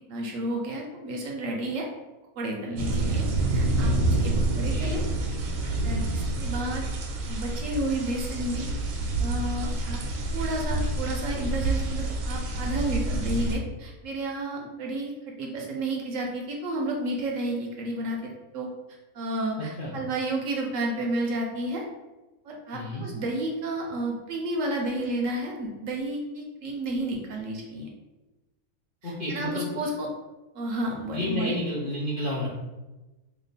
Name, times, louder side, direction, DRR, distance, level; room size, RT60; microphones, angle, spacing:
voice 1, 0.1-1.9 2.4-3.2 3.5-5.0 5.8-6.9 7.3-8.7 9.2-10.0 10.3-15.1 15.4-18.7 19.1-21.8 22.4-27.9 29.0-30.1 30.5-31.6, right 1 dB, 70° right, 0 dB, 0.8 m, -31 dB
sound 1, 2.8-13.5, right 2 dB, 85° right, 1.1 m, -27 dB
voice 2, 4.4-5.0 19.8-19.9 22.7-23.0 29.0-29.8 31.1-32.5, left 1 dB, 60° left, -6 dB, 0.5 m, -31 dB
2.9 x 2.2 x 3.9 m, 1.1 s
omnidirectional pair, 1.6 m